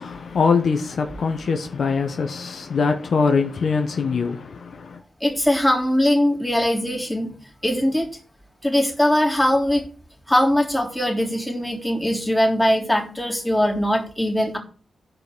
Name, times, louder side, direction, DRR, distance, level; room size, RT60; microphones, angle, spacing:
voice 1, 0.0-5.0, left 5 dB, 65° left, 1.3 m, -23 dB
voice 2, 5.2-7.3 7.6-8.1 8.6-9.9 10.3-14.6, left 1 dB, 5° left, 3.5 m, -21 dB
12.5 x 5.3 x 6.3 m
cardioid pair, 60°, 0 cm